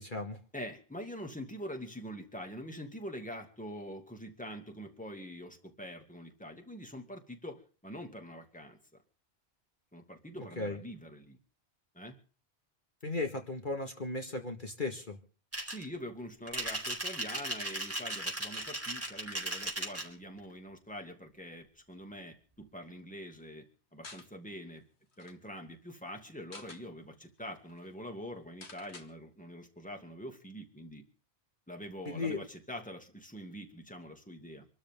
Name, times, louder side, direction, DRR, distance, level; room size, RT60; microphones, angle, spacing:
voice 1, 0.0-0.4 10.6-10.8 13.0-15.2 32.1-32.4, left 3 dB, 50° left, 4 dB, 2.1 m, -36 dB
voice 2, 0.5-8.8 9.9-11.4 11.9-12.2 15.6-24.8 25.2-31.0 31.7-34.7, equal, 5° left, 3 dB, 2.5 m, -44 dB
sound 1, 15.5-15.8 16.5-20.1, right 1 dB, 15° right, 4.4 m, -37 dB
sound 2, 24.0-24.3 24.8-24.9 25.1-25.4 26.3-26.8 27.4-27.5 27.7-27.9 28.6-29.1, left 3 dB, 85° left, 2.2 m, -50 dB
26.0 x 13.0 x 3.8 m, 0.39 s
omnidirectional pair, 1.1 m